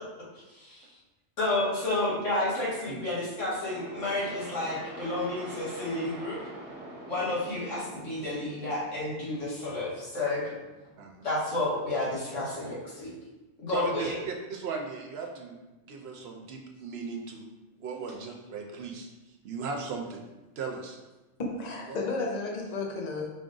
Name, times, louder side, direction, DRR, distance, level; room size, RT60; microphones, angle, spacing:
voice 1, 1.4-6.4 7.1-10.5 11.2-13.1 13.6-14.2, left 2 dB, 80° left, -8 dB, 2.0 m, -31 dB
sound 1, 3.6-11.1, right 2 dB, 40° right, 0.9 m, -45 dB
voice 2, 13.7-15.6 15.9-17.5 17.8-19.1 19.4-20.2 20.6-21.0 21.9-22.0, right 4 dB, 65° right, 2 dB, 0.7 m, -37 dB
voice 3, 21.4-23.3, left 3 dB, 40° left, -1 dB, 0.8 m, -32 dB
5.1 x 2.5 x 3.7 m, 1.1 s
omnidirectional pair, 1.2 m